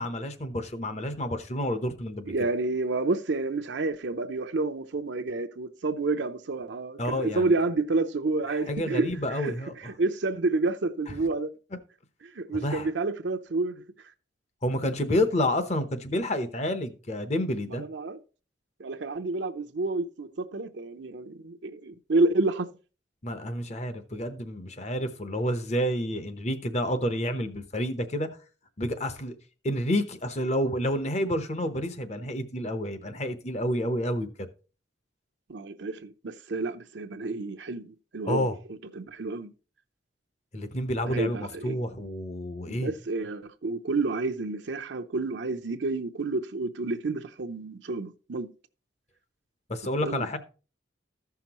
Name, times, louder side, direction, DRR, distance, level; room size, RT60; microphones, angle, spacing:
voice 1, 0.0-2.3 7.0-7.5 8.7-9.7 11.1-11.2 12.5-12.9 14.6-17.8 23.2-28.3 28.8-29.4 29.6-34.5 38.3-38.6 40.5-42.9 49.7-50.4, equal, 35° left, 0.9 m, -29 dB
voice 2, 2.3-11.5 12.3-13.8 17.7-18.2 18.8-22.7 35.5-38.5 38.9-39.5 41.1-41.8 42.7-48.5 50.0-50.3, right 3 dB, 70° right, 0.6 m, -29 dB
14.5 x 5.8 x 3.0 m
head